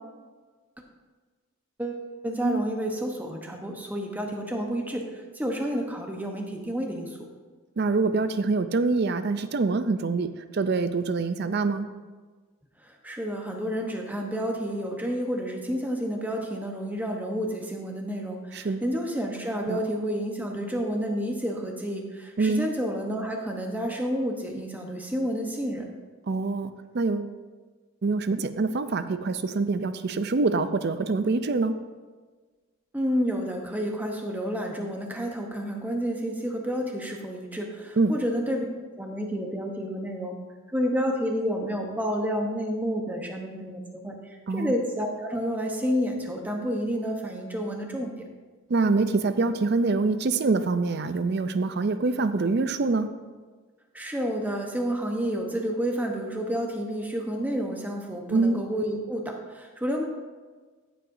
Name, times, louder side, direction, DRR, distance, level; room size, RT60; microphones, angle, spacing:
voice 1, 1.8-7.3 12.8-25.9 32.9-38.6 39.0-40.4 40.7-48.2 53.9-60.0, equal, 10° right, 2 dB, 0.9 m, -30 dB
voice 2, 7.8-11.9 18.5-18.9 19.7-19.8 22.4-22.7 26.3-27.3 28.0-31.8 38.0-38.2 44.5-44.7 48.7-53.2 58.3-58.6, right 3 dB, 50° right, 11 dB, 0.4 m, -25 dB
14.0 x 7.7 x 2.7 m, 1.4 s
head